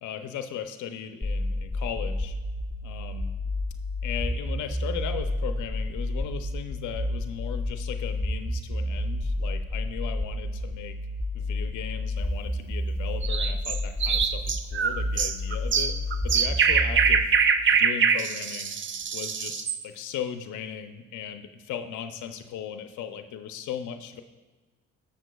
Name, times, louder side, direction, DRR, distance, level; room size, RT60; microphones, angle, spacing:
voice 1, 0.0-2.3 2.8-3.4 4.0-11.0 11.3-15.9 16.2-17.3 17.7-18.8 19.1-24.2, left 8 dB, 75° left, 7 dB, 0.6 m, -37 dB
sound 1, 1.2-17.2, left 1 dB, 10° right, 1.1 m, -30 dB
sound 2, 13.2-19.8, right 6 dB, 40° right, 0.5 m, -24 dB
11.0 x 7.0 x 2.3 m, 1.3 s
cardioid pair, 90°, 30 cm